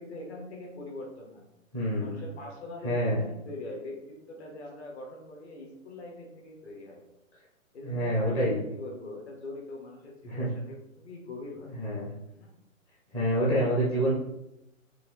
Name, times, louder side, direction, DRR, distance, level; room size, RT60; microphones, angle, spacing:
voice 1, 0.0-1.5 2.0-7.0 7.7-11.7 12.3-12.5, left 2 dB, 50° left, 0 dB, 1.4 m, -42 dB
voice 2, 1.7-2.1 2.8-3.2 7.8-8.6 10.2-10.5 11.7-12.1 13.1-14.1, equal, 10° left, -8 dB, 0.6 m, -27 dB
4.5 x 2.7 x 3.3 m, 0.87 s
figure-of-eight pair, 130°, 41 cm